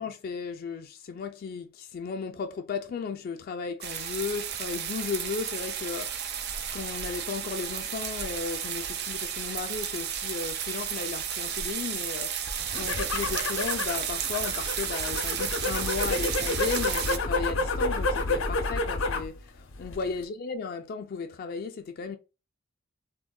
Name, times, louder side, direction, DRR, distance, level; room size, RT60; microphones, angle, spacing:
voice 1, 0.0-12.3 12.7-22.2, left 5 dB, 50° left, 0.3 m, -35 dB
sound 1, 3.8-17.2, right 8 dB, 55° right, 0.4 m, -33 dB
sound 2, 12.6-19.3 19.7-20.2, left 2 dB, 90° left, 0.7 m, -30 dB
3.6 x 2.1 x 2.2 m
head